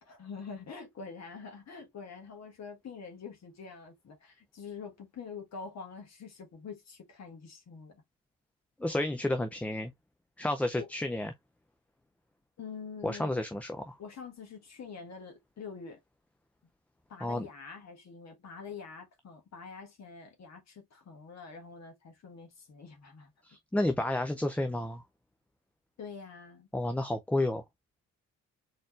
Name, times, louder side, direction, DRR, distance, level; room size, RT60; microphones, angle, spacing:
voice 1, 0.0-8.0 10.7-10.9 12.6-13.4 14.0-16.0 17.1-23.3 26.0-26.7, left 5 dB, 40° left, 1.6 m, -45 dB
voice 2, 8.8-9.9 10.4-11.3 13.0-13.9 17.2-17.5 23.4-25.0 26.7-27.6, left 1 dB, 5° left, 0.5 m, -31 dB
4.6 x 4.2 x 2.5 m
figure-of-eight pair, 45°, 40 cm